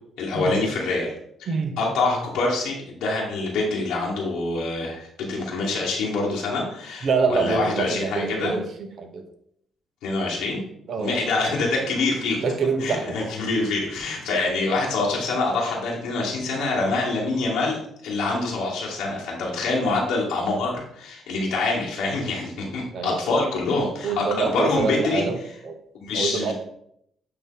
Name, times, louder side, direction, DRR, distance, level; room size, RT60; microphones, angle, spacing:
voice 1, 0.2-1.1 1.4-1.5 1.8-8.5 10.0-10.6 11.0-12.4 12.8-25.2 26.0-26.5, left 3 dB, 90° left, -3 dB, 1.4 m, -25 dB
voice 2, 1.5-1.8 7.0-9.3 10.9-11.3 12.4-13.3 22.9-23.3 24.0-25.8 26.1-26.5, right 4 dB, 55° right, 6 dB, 0.9 m, -26 dB
8.6 x 2.9 x 3.8 m, 0.72 s
cardioid pair, 90°, 0 cm